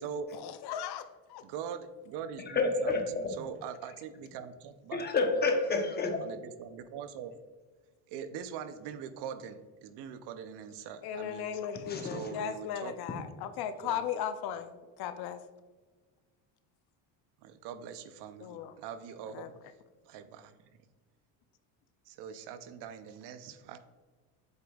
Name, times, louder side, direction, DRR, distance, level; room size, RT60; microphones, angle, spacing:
voice 1, 0.4-1.4 11.0-15.4 18.4-18.7 19.3-19.5, left 9 dB, 60° left, 0.6 m, -37 dB
voice 2, 1.4-5.1 6.2-7.3 8.1-11.5 12.0-12.9 13.8-14.1 17.4-19.5 20.0-20.6 22.1-23.8, right 7 dB, 70° right, 0.6 m, -42 dB
voice 3, 2.5-3.4 4.9-6.2 11.7-12.3, left 3 dB, 25° left, 0.8 m, -29 dB
8.0 x 5.1 x 2.3 m
cardioid pair, 130°, 43 cm